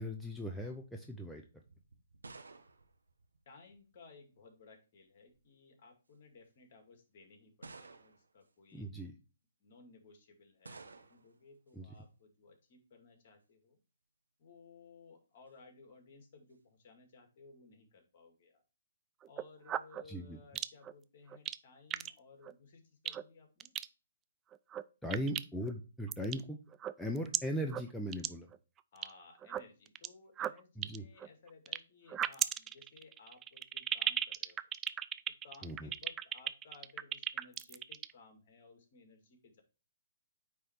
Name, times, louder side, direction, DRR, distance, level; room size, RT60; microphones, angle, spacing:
voice 1, 0.0-1.4 8.7-9.1 11.8-11.9 20.1-20.4 25.0-26.6 27.0-28.5 30.8-31.1 35.6-35.9, equal, 5° left, 1 dB, 0.7 m, -39 dB
sound 1, 1.6-4.0 5.0-5.5 6.3-6.4 7.6-8.4 10.6-11.4, right 3 dB, 85° right, 1.0 m, -54 dB
voice 2, 3.5-9.0 9.6-13.8 14.4-18.6 19.2-23.8 28.9-34.6 35.4-39.6, left 4 dB, 45° left, 5 dB, 2.0 m, -59 dB
sound 2, 19.2-20.0 20.6-20.9 21.3-21.6 21.9-22.1 22.4-22.5 23.1-23.2 23.6-23.9 24.5-24.8 25.1-25.7 26.1-26.4 26.7-27.4 27.7-27.8 28.1-28.3 28.5-29.1 29.4-30.1 30.4-31.8 32.1-38.1, right 11 dB, 20° right, 0.3 m, -35 dB
9.1 x 3.3 x 4.4 m, 0.33 s
figure-of-eight pair, 135°, 0 cm